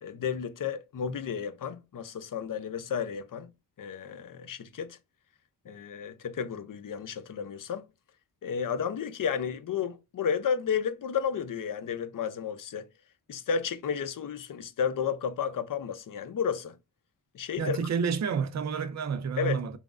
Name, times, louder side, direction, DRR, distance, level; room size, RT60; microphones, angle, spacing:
voice 1, 0.0-3.5 3.8-5.0 5.7-7.9 8.4-12.9 13.3-16.8 17.3-17.8 19.4-19.8, left 7 dB, 55° left, 0.6 m, -32 dB
voice 2, 17.6-19.8, right 6 dB, 45° right, 0.5 m, -29 dB
3.2 x 2.1 x 2.3 m
cardioid pair, 45°, 39 cm